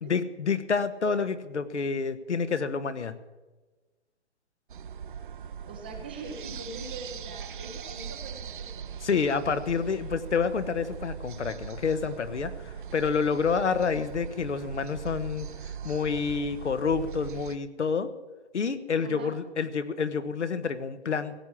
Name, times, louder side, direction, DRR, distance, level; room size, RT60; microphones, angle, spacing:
voice 1, 0.0-3.1 9.0-15.5 15.8-18.1 18.5-21.3, left 5 dB, 90° left, 11 dB, 1.4 m, -28 dB
sound 1, 4.7-17.6, right 7 dB, 50° right, 0.6 m, -40 dB
voice 2, 5.6-8.9 19.0-19.3, right 3 dB, 10° right, 2 dB, 0.5 m, -42 dB
16.0 x 8.5 x 7.5 m, 1.2 s
hypercardioid pair, 160°, 34 cm